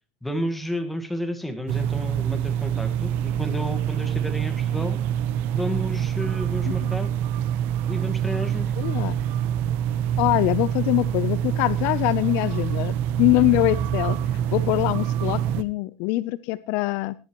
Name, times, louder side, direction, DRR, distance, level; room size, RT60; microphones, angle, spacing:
voice 1, 0.2-5.0 5.5-7.1 7.9-8.7, equal, 5° left, 7 dB, 1.6 m, -31 dB
sound 1, 1.7-15.6, right 10 dB, 50° right, 0.9 m, -26 dB
voice 2, 8.8-9.2 10.2-14.2 14.5-17.1, left 20 dB, 55° left, 17 dB, 0.6 m, -23 dB
19.0 x 11.0 x 3.0 m, 0.29 s
supercardioid pair, 155°, 4 cm